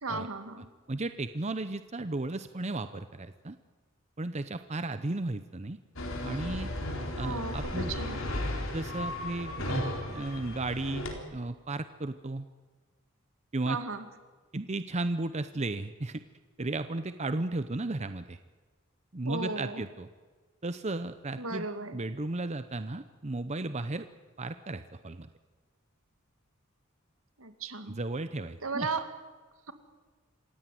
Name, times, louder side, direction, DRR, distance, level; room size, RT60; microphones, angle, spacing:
voice 1, 0.0-0.7 7.2-8.2 13.7-14.1 19.3-19.8 21.4-22.0 27.4-28.0 28.6-29.1, right 3 dB, 80° right, 9 dB, 2.2 m, -35 dB
voice 2, 0.9-3.6 4.2-5.8 6.2-6.7 7.2-7.9 8.5-12.4 13.5-13.8 14.5-16.2 16.6-18.4 19.1-20.1 20.6-24.1 24.4-25.3 27.9-28.9, right 2 dB, 30° right, 11 dB, 0.8 m, -34 dB
sound 1, 6.0-11.1, left 1 dB, 75° left, 4.1 m, -35 dB
27.0 x 16.5 x 9.3 m, 1.4 s
head